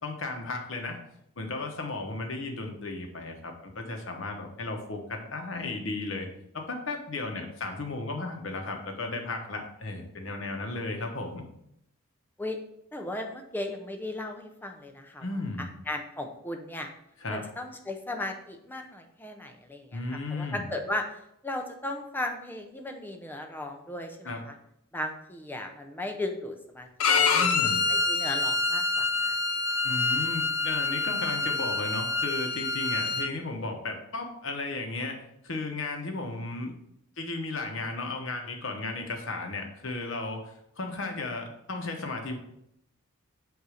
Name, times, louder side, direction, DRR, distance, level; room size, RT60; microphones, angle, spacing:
voice 1, 0.0-1.0 1.4-6.3 6.5-11.4 15.2-15.6 17.2-17.5 19.9-20.6 24.2-24.4 27.3-27.8 29.8-36.7 37.2-42.4, left 3 dB, 60° left, 3 dB, 1.1 m, -35 dB
voice 2, 12.9-15.2 15.6-16.9 17.3-21.2 21.4-24.5 24.9-26.9 27.1-27.5 27.9-29.4, left 1 dB, 10° left, 4 dB, 0.6 m, -36 dB
Bowed string instrument, 27.0-33.3, left 4 dB, 90° left, 0.6 m, -26 dB
8.0 x 2.7 x 4.9 m, 0.76 s
head